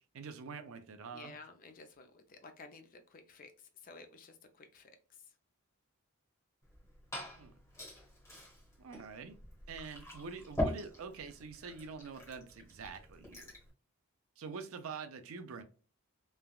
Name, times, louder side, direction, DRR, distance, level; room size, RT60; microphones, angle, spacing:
voice 1, 0.1-1.3 7.4-7.5 8.8-9.3 9.7-13.5 14.4-15.6, right 5 dB, 65° right, 0.4 m, -45 dB
voice 2, 1.1-5.3, left 4 dB, 40° left, 0.4 m, -54 dB
Glass / Fill (with liquid), 6.6-13.7, left 1 dB, 15° left, 1.1 m, -43 dB
3.3 x 2.2 x 2.2 m
head